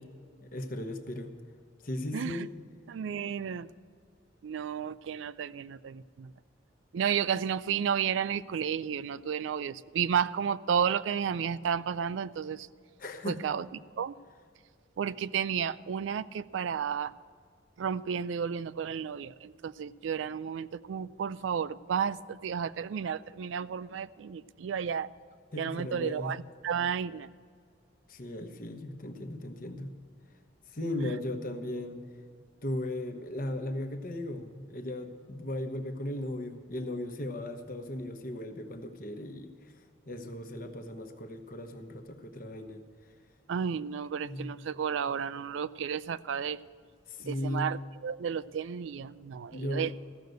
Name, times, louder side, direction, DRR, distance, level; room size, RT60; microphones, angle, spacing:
voice 1, 0.4-1.3 1.8-2.5 13.0-13.4 25.5-26.3 28.1-29.9 30.7-32.0 32.6-39.7 40.1-42.8 44.2-44.5 47.1-47.7 49.5-49.9, left 1 dB, 45° left, 6 dB, 1.0 m, -37 dB
voice 2, 2.1-2.5 2.9-3.7 4.4-6.3 6.9-12.7 13.3-13.7 14.0-14.1 15.0-17.1 17.8-25.1 25.6-27.3 31.0-31.1 43.5-46.6 47.3-50.0, right 7 dB, 75° right, 17 dB, 0.3 m, -32 dB
14.5 x 6.6 x 7.9 m, 2.1 s
head